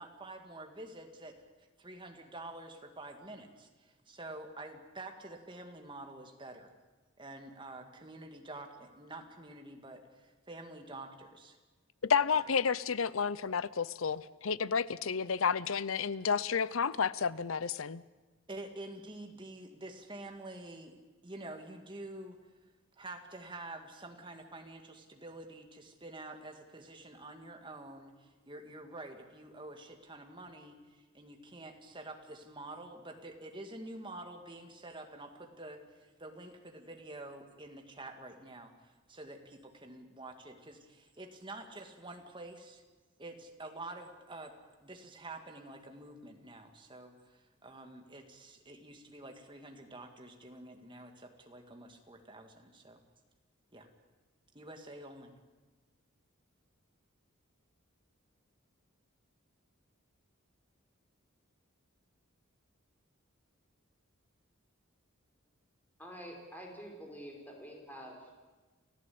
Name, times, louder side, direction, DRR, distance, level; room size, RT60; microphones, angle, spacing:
voice 1, 0.0-1.4 1.8-6.7 7.2-11.6 18.5-21.0 21.2-22.4 23.0-38.7 39.1-42.8 43.2-53.0 53.7-53.9 54.5-55.3, right 2 dB, 25° right, 4 dB, 2.2 m, -48 dB
voice 2, 12.0-18.0, left 6 dB, 70° left, 18 dB, 0.7 m, -31 dB
voice 3, 66.0-68.4, equal, 10° left, 0 dB, 4.9 m, -47 dB
29.5 x 14.0 x 8.7 m, 1.3 s
head